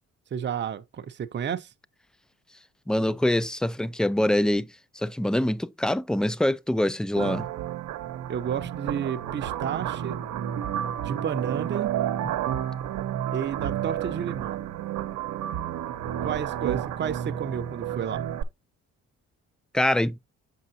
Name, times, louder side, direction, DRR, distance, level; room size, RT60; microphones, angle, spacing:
voice 1, 0.3-1.7 8.3-10.2 11.0-11.9 13.3-14.6 16.2-18.2, right 8 dB, 35° right, 0.7 m, -31 dB
voice 2, 2.9-4.7 5.0-7.5 19.7-20.2, left 1 dB, ahead, 0.3 m, -24 dB
sound 1, 7.2-18.4, right 11 dB, 85° right, 0.9 m, -31 dB
7.8 x 5.4 x 2.7 m
cardioid pair, 90°, 30 cm